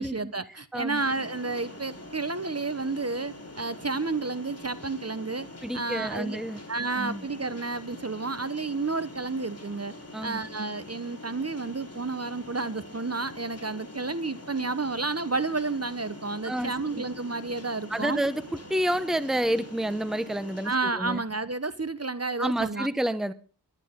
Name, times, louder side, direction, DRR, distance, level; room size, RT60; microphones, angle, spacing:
voice 1, 0.0-5.5 5.7-6.4 6.7-9.9 10.2-18.2 20.6-22.9, right 3 dB, 35° right, 1.0 m, -31 dB
sound 1, 0.9-20.7, left 1 dB, 35° left, 3.5 m, -44 dB
voice 2, 5.6-6.6 6.9-7.2 10.1-10.4 16.4-17.0 17.9-21.2 22.4-23.3, right 1 dB, ahead, 1.0 m, -29 dB
21.5 x 11.0 x 3.8 m
wide cardioid pair, 50°, 41 cm